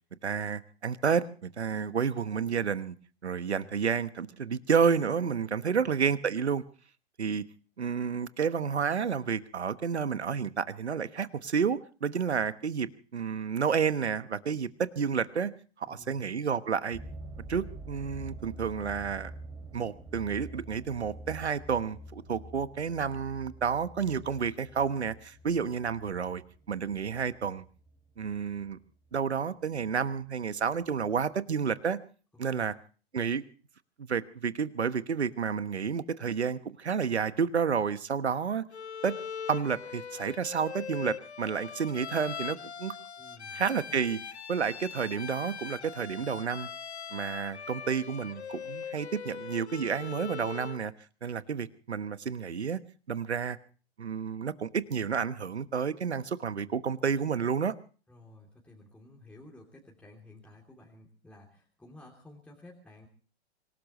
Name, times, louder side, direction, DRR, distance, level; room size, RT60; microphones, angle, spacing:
voice 1, 0.2-3.0 3.2-6.6 7.2-7.4 7.8-15.5 15.8-17.0 17.5-19.3 19.7-26.4 26.7-27.6 28.2-28.8 29.1-32.0 32.4-32.7 33.1-33.4 34.0-38.6 39.0-39.2 39.5-42.9 43.5-44.2 44.5-46.7 47.1-50.9 51.2-52.8 53.1-53.6 54.0-57.8, right 6 dB, 80° right, 14 dB, 1.2 m, -30 dB
voice 2, 15.8-16.3 32.5-32.7 43.2-43.6 58.1-63.1, left 2 dB, 5° left, -1 dB, 3.0 m, -53 dB
sound 1, 16.9-29.2 29.8-30.1 30.7-30.8 31.2-31.3, right 2 dB, 10° right, 2.7 m, -46 dB
Bowed string instrument, 38.7-50.9, left 7 dB, 85° left, 0.8 m, -41 dB
25.5 x 17.5 x 3.1 m, 0.39 s
figure-of-eight pair, 115°, 33 cm